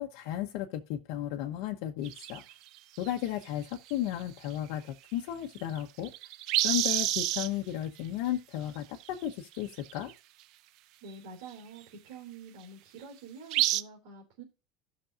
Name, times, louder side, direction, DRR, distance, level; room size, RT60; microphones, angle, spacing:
voice 1, 0.0-2.4 3.0-6.1 6.6-10.1, left 12 dB, 65° left, 0.9 m, -34 dB
sound 1, 2.0-3.3 3.9-4.2 4.5-4.6 5.6-7.5 9.0-9.3 9.7-10.1 11.1-11.2 13.5-13.8, right 15 dB, 50° right, 0.5 m, -29 dB
voice 2, 11.0-14.4, right 4 dB, 85° right, 3.3 m, -47 dB
15.5 x 6.1 x 2.5 m
cardioid pair, 170°, 0 cm